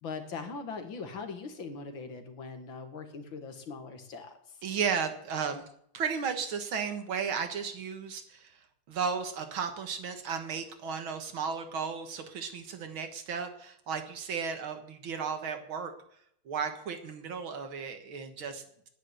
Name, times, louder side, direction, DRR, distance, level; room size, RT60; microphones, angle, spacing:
voice 1, 0.0-4.6, left 4 dB, 70° left, 6 dB, 2.4 m, -41 dB
voice 2, 4.6-5.7 5.9-15.9 16.5-18.6, right 6 dB, 75° right, 7 dB, 2.3 m, -34 dB
10.0 x 10.0 x 8.0 m, 0.70 s
omnidirectional pair, 2.2 m